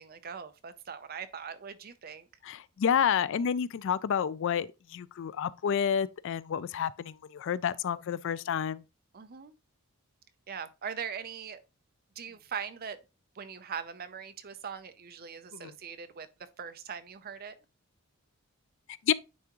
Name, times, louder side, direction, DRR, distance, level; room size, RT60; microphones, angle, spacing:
voice 1, 0.0-2.3 9.1-9.5 10.5-11.6 12.2-13.0 13.3-17.6, right 7 dB, 45° right, 0.6 m, -41 dB
voice 2, 2.4-8.8 15.5-15.7 19.0-19.1, left 8 dB, 55° left, 0.3 m, -29 dB
9.4 x 3.5 x 3.0 m
head